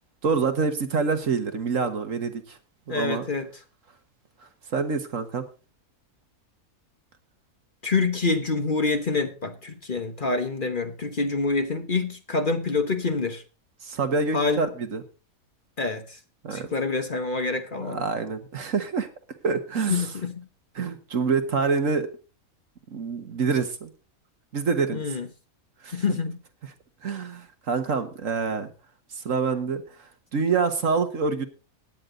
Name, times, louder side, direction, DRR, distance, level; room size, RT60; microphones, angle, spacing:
voice 1, 0.2-2.6 2.9-3.2 4.7-5.5 13.8-15.0 16.4-16.7 17.8-19.1 19.4-20.1 20.8-22.1 22.9-23.9 24.5-25.0 25.8-26.2 27.0-28.7 29.2-31.5, right 5 dB, 60° right, 1.8 m, -26 dB
voice 2, 2.9-3.5 7.8-13.4 14.3-14.7 15.8-16.2 16.5-18.0 19.9-20.4 24.9-25.3 25.9-26.3, left 4 dB, 40° left, 1.2 m, -26 dB
16.5 x 9.8 x 3.9 m
omnidirectional pair, 1.5 m